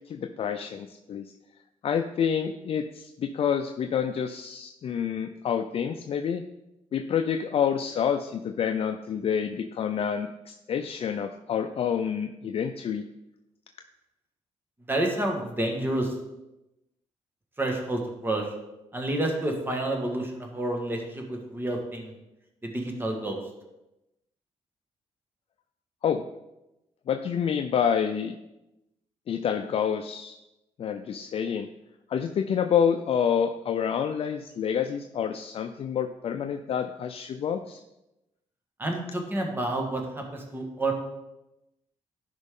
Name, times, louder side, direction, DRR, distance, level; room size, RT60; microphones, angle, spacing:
voice 1, 0.1-1.3 1.8-6.4 6.9-13.0 26.0-26.3 27.1-28.3 29.3-30.4 30.8-31.7 32.1-37.8, left 8 dB, 55° left, 7 dB, 0.5 m, -28 dB
voice 2, 14.9-16.1 17.6-18.5 18.9-22.1 22.6-23.4 38.8-40.9, right 1 dB, 15° right, 1 dB, 1.6 m, -29 dB
12.0 x 5.3 x 3.7 m, 0.94 s
cardioid pair, 105°, 12 cm